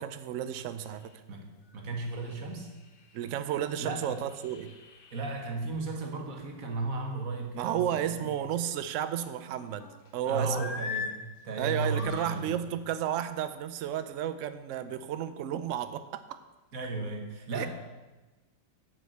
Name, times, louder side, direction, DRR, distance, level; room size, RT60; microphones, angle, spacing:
voice 1, 0.0-1.1 3.1-4.7 7.6-10.7 11.6-16.4 17.5-17.7, right 10 dB, 90° right, 11 dB, 0.6 m, -32 dB
sound 1, 0.7-1.2 1.7-1.8 2.1-5.5 8.0-8.7 9.1-10.1 10.5-11.2 11.7-12.4 13.1-13.3, left 5 dB, 45° left, 0.8 m, -43 dB
voice 2, 1.7-2.7 3.8-4.2 5.1-8.3 10.2-12.6 16.7-17.7, right 3 dB, 50° right, 2 dB, 1.7 m, -35 dB
8.1 x 6.5 x 7.7 m, 1.1 s
omnidirectional pair, 2.0 m